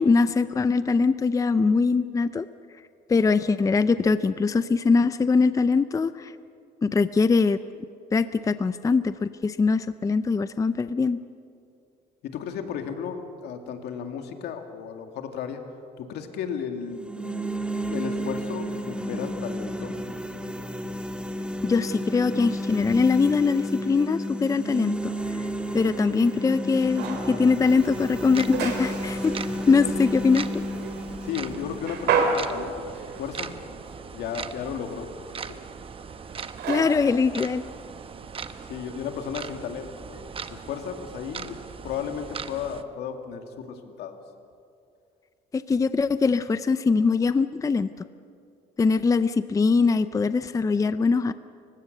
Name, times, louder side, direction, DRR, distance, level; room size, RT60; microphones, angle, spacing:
voice 1, 0.0-2.5 3.1-6.3 6.8-7.6 8.1-11.2 21.6-25.1 25.4-25.5 25.7-29.3 29.7-30.5 36.7-37.6 45.5-47.9 48.8-51.3, left 4 dB, 20° left, 13 dB, 0.5 m, -22 dB
voice 2, 12.2-15.6 16.0-17.1 17.9-19.9 29.8-30.0 31.2-33.5 34.1-35.1 38.7-41.6 41.8-44.2, left 7 dB, 75° left, 5 dB, 2.2 m, -34 dB
sound 1, 16.8-32.9, equal, 5° right, 1.6 m, -32 dB
sound 2, 25.0-38.8, right 5 dB, 75° right, 3.0 m, -34 dB
sound 3, 27.6-42.8, right 6 dB, 35° right, 1.0 m, -40 dB
29.5 x 16.0 x 6.7 m, 2.5 s
cardioid pair, 110°, 17 cm